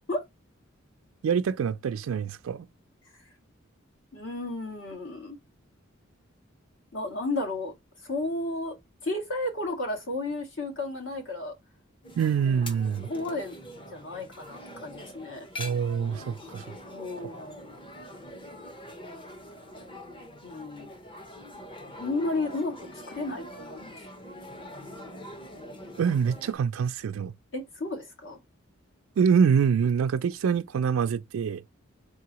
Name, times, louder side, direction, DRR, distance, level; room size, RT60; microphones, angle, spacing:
voice 1, 1.2-2.7 12.2-13.1 15.6-16.6 26.0-27.3 29.2-31.6, right 6 dB, 85° right, 0.3 m, -25 dB
voice 2, 4.1-5.4 6.9-7.7 8.0-8.8 9.0-11.5 12.8-13.6 13.9-15.5 16.9-17.7 20.4-20.9 21.9-24.0 27.5-28.4, left 2 dB, 65° left, 1.8 m, -33 dB
sound 1, 12.0-26.5, left 1 dB, 25° left, 0.8 m, -44 dB
3.9 x 3.7 x 2.9 m
head